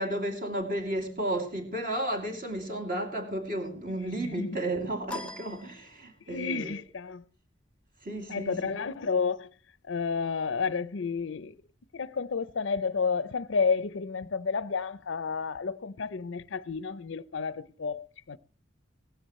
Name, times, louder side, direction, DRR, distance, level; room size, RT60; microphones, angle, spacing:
voice 1, 0.0-6.7 8.0-8.7, right 1 dB, 45° right, 2.5 m, -33 dB
voice 2, 4.2-4.6 6.3-7.2 8.3-9.5 9.8-11.5 11.9-18.4, left 5 dB, 70° left, 0.6 m, -31 dB
sound 1, 5.1-6.5, left 3 dB, 5° left, 0.8 m, -42 dB
17.0 x 15.5 x 3.1 m
head